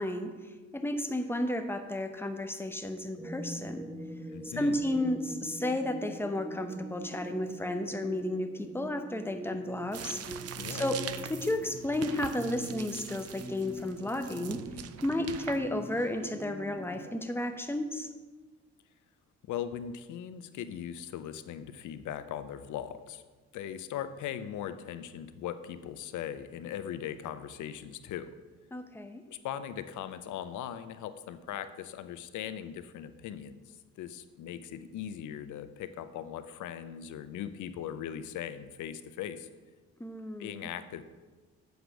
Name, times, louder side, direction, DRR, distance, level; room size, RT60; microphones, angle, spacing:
voice 1, 0.0-3.9 4.4-10.2 10.7-14.6 15.0-18.1 28.7-29.2 40.0-40.7, left 1 dB, 10° left, 6 dB, 0.8 m, -33 dB
sound 1, 3.2-17.2, right 1 dB, 10° right, 0.4 m, -43 dB
voice 2, 4.3-4.8 10.6-10.9 19.5-23.2 23.5-28.3 29.3-39.5 40.4-41.0, left 10 dB, 75° left, 12 dB, 0.6 m, -39 dB
sound 2, 9.9-16.3, right 9 dB, 55° right, 0.6 m, -43 dB
8.0 x 5.0 x 6.1 m, 1.3 s
cardioid pair, 90°, 30 cm